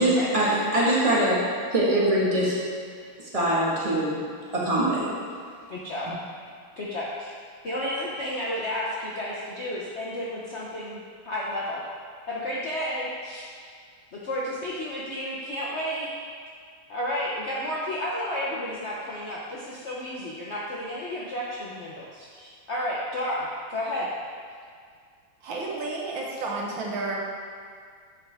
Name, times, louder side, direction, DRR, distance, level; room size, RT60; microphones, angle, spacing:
voice 1, 0.0-1.4 1.7-2.6 3.2-4.2 4.5-5.1, right 1 dB, 20° right, -6 dB, 1.1 m, -23 dB
voice 2, 5.7-6.1 6.8-7.3 7.6-11.8 12.3-13.5 14.2-16.1 16.9-24.1, left 1 dB, 90° left, -6 dB, 0.6 m, -32 dB
voice 3, 25.4-27.2, right 3 dB, 65° right, -2 dB, 1.6 m, -31 dB
10.5 x 4.8 x 3.4 m, 2.1 s
omnidirectional pair, 2.4 m